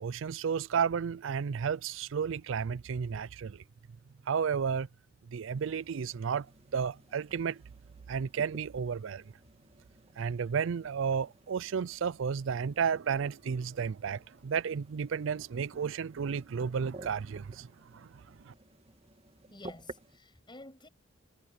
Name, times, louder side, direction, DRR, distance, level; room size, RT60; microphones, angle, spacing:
voice 1, 0.0-3.6 4.3-4.9 5.3-6.5 6.7-7.6 8.1-9.2 10.2-18.5, right 6 dB, 70° right, 0.4 m, -32 dB
sound 1, 5.5-20.2, right 2 dB, 30° right, 2.2 m, -54 dB
voice 2, 19.5-20.9, left 2 dB, 25° left, 7.6 m, -50 dB
head